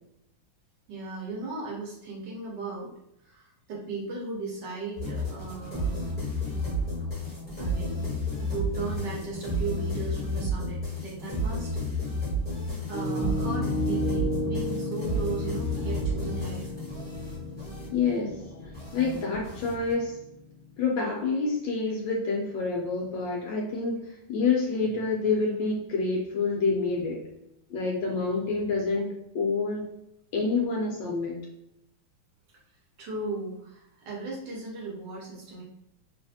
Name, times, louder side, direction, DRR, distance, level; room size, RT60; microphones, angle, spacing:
voice 1, 0.9-2.9 3.2-6.1 7.6-8.0 8.4-12.0 12.9-16.7 33.0-35.6, right 3 dB, 65° right, -3 dB, 1.2 m, -36 dB
sound 1, 5.0-19.9, equal, 5° left, 0.8 m, -32 dB
Piano, 12.9-20.8, left 1 dB, 45° left, 0.5 m, -34 dB
voice 2, 17.9-18.4 18.9-20.2 20.8-27.3 27.7-29.1 29.3-29.9 30.3-31.4, left 4 dB, 75° left, -1 dB, 1.1 m, -27 dB
3.3 x 2.4 x 2.6 m, 0.82 s
omnidirectional pair, 2.3 m